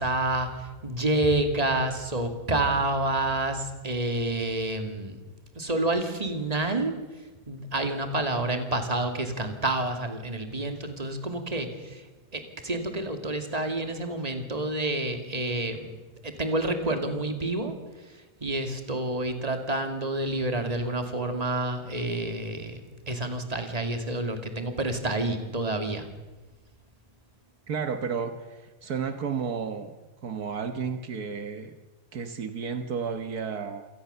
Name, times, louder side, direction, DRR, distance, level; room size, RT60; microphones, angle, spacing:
voice 1, 0.0-5.2 5.6-7.0 7.5-12.1 12.3-15.9 16.2-26.1, right 2 dB, 25° right, 6 dB, 2.5 m, -29 dB
voice 2, 27.7-29.9 30.2-31.7 32.1-33.9, right 6 dB, 70° right, 8 dB, 1.8 m, -32 dB
27.5 x 19.0 x 6.9 m, 1.2 s
omnidirectional pair, 1.7 m